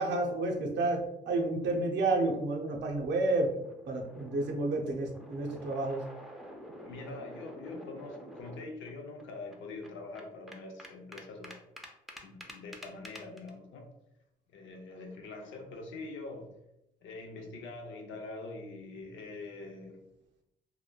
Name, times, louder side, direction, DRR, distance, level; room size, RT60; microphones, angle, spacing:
voice 1, 0.0-3.5 3.9-6.0, right 2 dB, 65° right, 1 dB, 0.6 m, -30 dB
sound 1, 2.8-8.9 9.2-9.3 9.5-13.5, equal, ahead, 0.4 m, -48 dB
voice 2, 6.8-11.6 12.2-13.8 14.5-16.5 17.0-20.0, left 3 dB, 75° left, 3 dB, 0.6 m, -44 dB
2.9 x 2.1 x 2.2 m, 0.86 s
cardioid pair, 90°, 20 cm